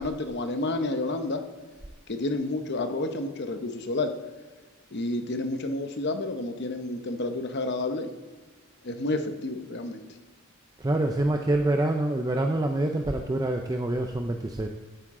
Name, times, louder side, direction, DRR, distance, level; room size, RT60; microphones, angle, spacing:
voice 1, 0.0-1.4 2.1-4.1 4.9-8.1 8.8-10.0, left 2 dB, 50° left, 7 dB, 0.8 m, -30 dB
voice 2, 10.8-14.7, right 1 dB, 15° right, 4 dB, 0.4 m, -26 dB
11.0 x 9.5 x 3.7 m, 1.4 s
head